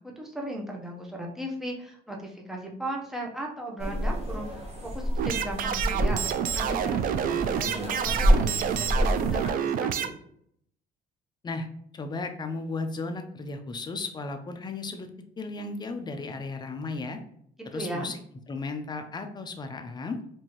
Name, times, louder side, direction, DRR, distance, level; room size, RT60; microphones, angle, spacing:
voice 1, 0.2-4.6 4.9-6.3 6.5-7.7 8.0-10.1 17.7-18.1, right 1 dB, ahead, -1 dB, 0.9 m, -36 dB
sound 1, 3.8-9.5, equal, 40° right, 1.0 m, -28 dB
sound 2, 5.2-10.1, right 8 dB, 55° right, 0.4 m, -28 dB
voice 2, 11.9-15.1 15.4-17.2 17.6-18.2 18.5-20.2, left 3 dB, 25° left, 7 dB, 0.5 m, -35 dB
4.5 x 2.7 x 3.0 m, 0.68 s
cardioid pair, 110°, 17 cm